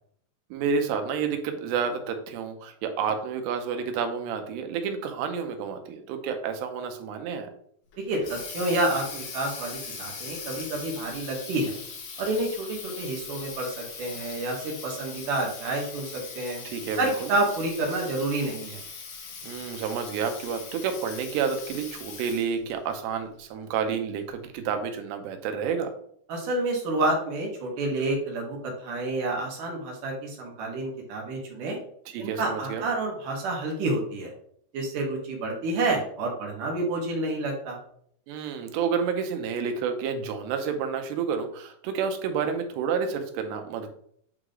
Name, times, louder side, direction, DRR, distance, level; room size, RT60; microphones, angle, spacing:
voice 1, 0.5-7.5 16.6-17.3 19.4-25.9 32.1-32.9 38.3-43.9, right 6 dB, 85° right, 6 dB, 3.0 m, -30 dB
Water tap faucet, 7.9-22.6, left 5 dB, 75° left, 3.6 m, -40 dB
voice 2, 8.0-11.8 12.2-16.6 17.0-18.8 26.3-31.8 32.2-34.3 34.7-37.8, right 2 dB, 60° right, 0 dB, 2.6 m, -29 dB
9.0 x 3.1 x 3.8 m, 0.64 s
omnidirectional pair, 4.8 m